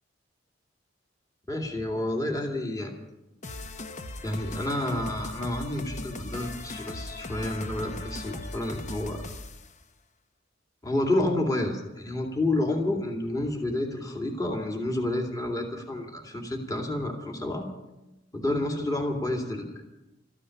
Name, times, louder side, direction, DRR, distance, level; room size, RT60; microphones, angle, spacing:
voice 1, 1.5-2.9 4.2-9.2 10.8-17.7 18.3-19.8, left 1 dB, 20° left, 1 dB, 2.3 m, -29 dB
sound 1, 3.4-9.7, left 2 dB, 40° left, 0.8 m, -39 dB
14.0 x 9.8 x 9.9 m, 0.98 s
head